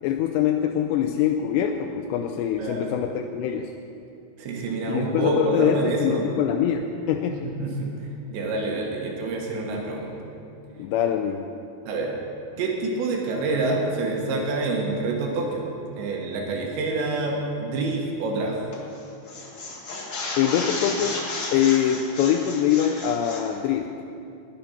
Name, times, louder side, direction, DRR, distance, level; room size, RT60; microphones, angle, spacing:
voice 1, 0.0-3.7 4.9-7.6 10.8-11.5 20.4-21.2 21.5-23.9, left 9 dB, 90° left, 4 dB, 2.8 m, -24 dB
voice 2, 2.5-2.9 4.4-6.3 7.3-7.9 8.3-10.2 11.9-12.1 12.6-15.7 16.0-18.6, right 2 dB, 85° right, 0 dB, 4.0 m, -27 dB
sound 1, 18.7-19.0 19.3-23.5, left 2 dB, 45° left, 1.5 m, -33 dB
21.0 x 8.8 x 5.8 m, 2.6 s
omnidirectional pair, 4.9 m